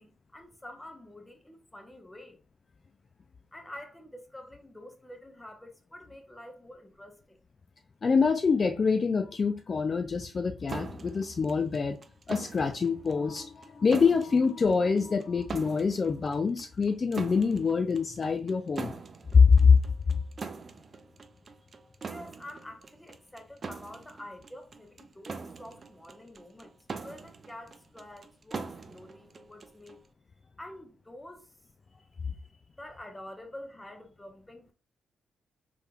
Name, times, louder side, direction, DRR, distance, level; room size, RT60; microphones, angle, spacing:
voice 1, 0.0-2.4 3.5-7.4 22.0-26.8 27.0-30.0 30.6-31.6 32.1-34.7, left 1 dB, 15° left, 0.9 m, -47 dB
voice 2, 8.0-12.0 12.3-18.9 19.3-19.8, left 5 dB, 45° left, 0.3 m, -25 dB
sound 1, 10.7-30.1, right 4 dB, 45° right, 0.4 m, -43 dB
3.3 x 3.0 x 2.3 m
supercardioid pair, 60°, 0 cm